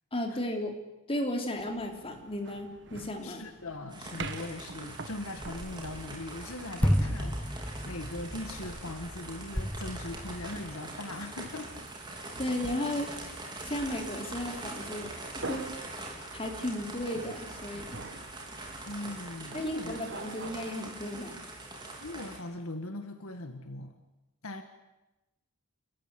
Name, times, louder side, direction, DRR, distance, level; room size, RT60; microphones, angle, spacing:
voice 1, 0.1-0.7 1.1-3.4 12.4-13.1 13.6-15.1 15.5-15.7 16.3-18.0 19.5-21.4, left 1 dB, 25° left, 3 dB, 3.4 m, -34 dB
sound 1, 1.5-20.5, right 3 dB, 55° right, 1.4 m, -47 dB
voice 2, 3.2-11.9 18.9-20.4 22.0-23.9 24.4-24.6, left 2 dB, 70° left, 7 dB, 1.8 m, -40 dB
sound 2, 3.9-22.4, right 2 dB, 20° right, 4.5 m, -43 dB
sound 3, 5.4-10.7, equal, 5° left, 1.0 m, -33 dB
29.5 x 14.5 x 9.9 m, 1.0 s
head